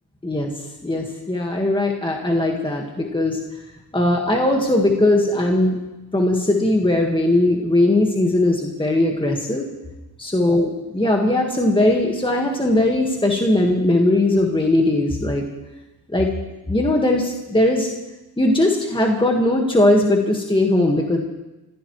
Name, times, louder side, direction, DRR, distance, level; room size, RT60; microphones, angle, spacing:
voice 1, 0.8-3.4 3.9-5.8 6.1-9.7 10.2-15.4 16.1-16.3 16.7-17.9 18.4-21.2, left 1 dB, 10° left, 0 dB, 1.9 m, -19 dB
25.5 x 15.5 x 3.3 m, 1.0 s
wide cardioid pair, 95°, 41 cm